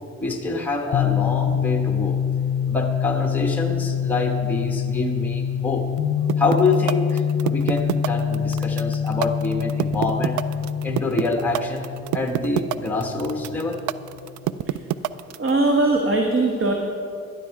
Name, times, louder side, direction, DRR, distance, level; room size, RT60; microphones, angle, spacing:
voice 1, 0.2-2.2 2.7-5.8 6.4-10.4 10.8-13.8, left 3 dB, 5° left, 2 dB, 1.2 m, -26 dB
sound 1, 0.9-14.5, left 8 dB, 50° left, 0.8 m, -26 dB
sound 2, 6.3-15.5, right 14 dB, 75° right, 0.4 m, -25 dB
voice 2, 15.4-16.7, right 2 dB, 45° right, 2 dB, 1.3 m, -20 dB
12.0 x 12.0 x 4.7 m, 2.6 s
cardioid pair, 90°, 30 cm